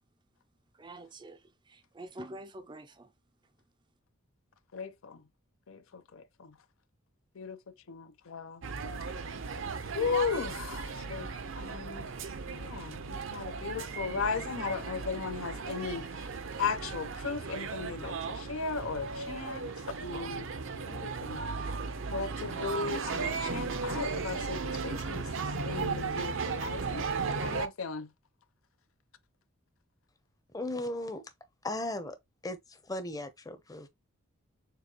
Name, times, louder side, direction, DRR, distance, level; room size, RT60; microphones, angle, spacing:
voice 1, 0.8-1.4 1.7-3.1, right 1 dB, 20° right, 0.5 m, -46 dB
voice 2, 4.7-5.2 5.7-6.5 7.4-7.6 7.9-8.6 9.9-11.3 11.6-12.1 12.5-16.3 16.6-19.7 20.0-21.4 22.1-25.3 25.6-27.1 27.4-28.1, left 5 dB, 70° left, 0.6 m, -36 dB
sound 1, 8.6-27.7, right 4 dB, 65° right, 0.7 m, -36 dB
voice 3, 30.5-31.2 31.6-32.2 32.4-33.9, left 1 dB, 15° left, 0.7 m, -36 dB
6.8 x 2.4 x 2.9 m
head